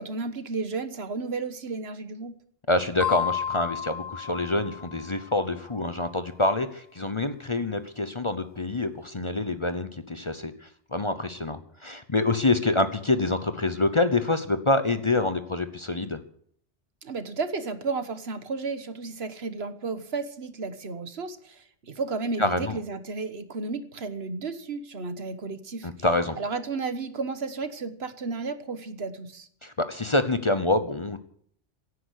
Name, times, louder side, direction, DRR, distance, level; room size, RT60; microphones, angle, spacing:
voice 1, 0.0-2.3 17.0-25.9 26.4-29.5, right 4 dB, 65° right, 11 dB, 1.5 m, -33 dB
voice 2, 2.7-16.2 22.4-22.8 25.8-26.4 29.6-31.2, left 2 dB, 30° left, 11 dB, 0.8 m, -26 dB
sound 1, 3.0-5.5, left 9 dB, 15° left, 3.7 m, -32 dB
17.0 x 9.5 x 8.2 m, 0.63 s
omnidirectional pair, 1.1 m